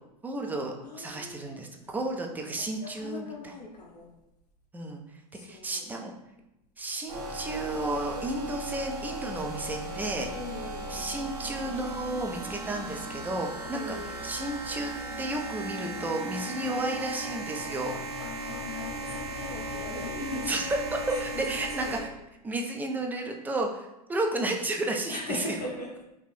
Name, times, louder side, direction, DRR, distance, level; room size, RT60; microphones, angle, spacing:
voice 1, 0.2-3.3 4.7-5.0 5.4-6.1 6.8-10.3 10.9-14.0 14.2-14.9 15.2-18.0 20.5-20.6 21.1-22.1 22.4-25.6, right 2 dB, 10° right, 2 dB, 0.4 m, -32 dB
voice 2, 0.8-1.6 2.6-4.1 5.3-5.8 10.3-11.1 13.7-14.3 16.6-16.9 18.2-20.6 21.0-22.1 25.1-26.0, left 2 dB, 75° left, -2 dB, 0.7 m, -40 dB
sound 1, 7.1-22.0, right 1 dB, 75° right, 1.3 m, -37 dB
3.0 x 2.5 x 3.1 m, 0.90 s
hypercardioid pair, 100°, 21 cm